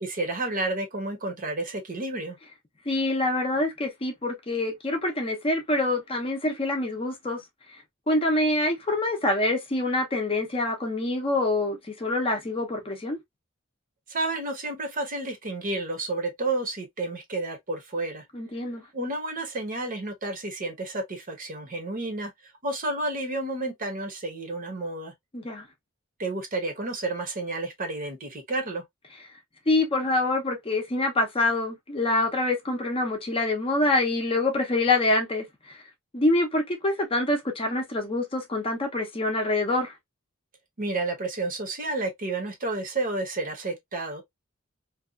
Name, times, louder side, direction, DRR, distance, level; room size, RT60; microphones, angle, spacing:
voice 1, 0.0-2.4 14.1-18.2 18.9-22.3 22.6-25.1 26.2-28.8 40.8-44.2, right 2 dB, 40° right, 0.8 m, -31 dB
voice 2, 2.9-7.4 8.1-13.2 18.3-18.8 25.3-25.7 29.7-35.8 36.1-39.9, left 2 dB, 25° left, 0.6 m, -26 dB
2.6 x 2.3 x 2.3 m
head